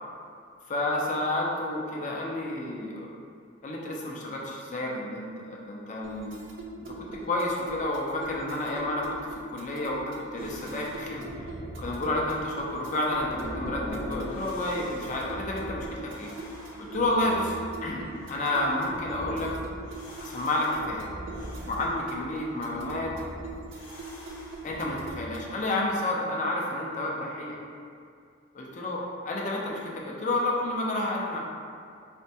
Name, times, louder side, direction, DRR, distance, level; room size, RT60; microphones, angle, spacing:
voice 1, 0.7-3.1 3.6-6.3 6.8-9.0 9.5-10.0 10.3-11.3 11.8-13.3 13.5-16.3 16.8-17.5 17.8-19.5 20.2-21.1 21.6-23.1 24.6-27.6 28.5-31.4, left 1 dB, 40° left, -2 dB, 0.4 m, -30 dB
sound 1, 6.0-25.6, right 2 dB, 75° right, 0.4 m, -43 dB
sound 2, 10.3-25.3, equal, 85° left, 0.7 m, -42 dB
4.3 x 2.2 x 2.7 m, 2.3 s
head